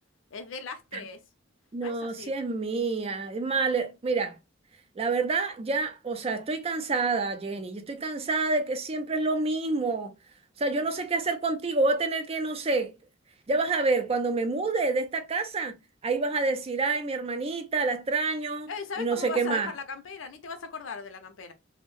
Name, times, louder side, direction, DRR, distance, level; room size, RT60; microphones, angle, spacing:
voice 1, 0.3-1.2 1.8-2.3 18.7-21.5, left 5 dB, 85° left, 0.6 m, -38 dB
voice 2, 1.7-4.4 5.0-10.1 10.6-12.9 13.5-15.8 16.0-18.7 19.0-19.7, right 3 dB, 30° right, 0.4 m, -28 dB
2.6 x 2.0 x 3.0 m
head